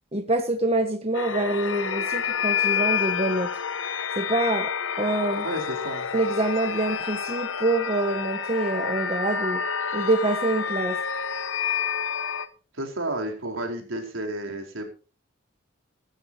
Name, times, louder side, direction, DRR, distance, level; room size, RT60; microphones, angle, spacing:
voice 1, 0.1-3.5 4.2-5.4 6.1-9.6 9.9-11.0, right 2 dB, 30° right, 6 dB, 1.4 m, -26 dB
sound 1, 1.1-12.5, left 7 dB, 80° left, 1.1 m, -28 dB
voice 2, 5.4-6.1 12.7-14.9, right 1 dB, 85° right, 3 dB, 4.5 m, -31 dB
15.5 x 14.0 x 2.9 m, 0.35 s
head